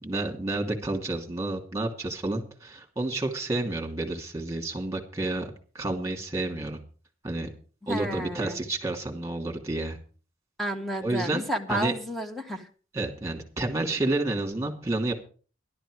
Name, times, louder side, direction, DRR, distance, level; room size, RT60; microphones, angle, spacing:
voice 1, 0.0-5.5 5.7-6.8 7.2-7.5 7.9-10.0 11.0-11.9 12.9-15.1, right 2 dB, 15° right, 2 dB, 2.7 m, -30 dB
voice 2, 7.8-8.6 10.6-12.7, right 1 dB, ahead, 3 dB, 1.6 m, -31 dB
12.5 x 12.0 x 5.0 m, 0.39 s
head